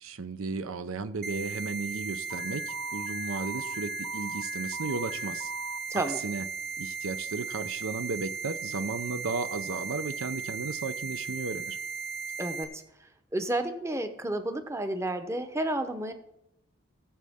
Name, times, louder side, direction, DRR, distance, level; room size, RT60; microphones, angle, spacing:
voice 1, 0.0-5.5 6.2-6.4 6.8-11.8, right 4 dB, 75° right, 12 dB, 0.6 m, -34 dB
sound 1, 1.2-12.6, right 5 dB, 50° right, 1.2 m, -36 dB
Alarm, 2.3-5.8, equal, 20° left, 0.7 m, -41 dB
voice 2, 5.9-6.2 12.4-16.1, right 1 dB, 15° right, 8 dB, 0.8 m, -31 dB
18.5 x 7.5 x 3.6 m, 0.85 s
head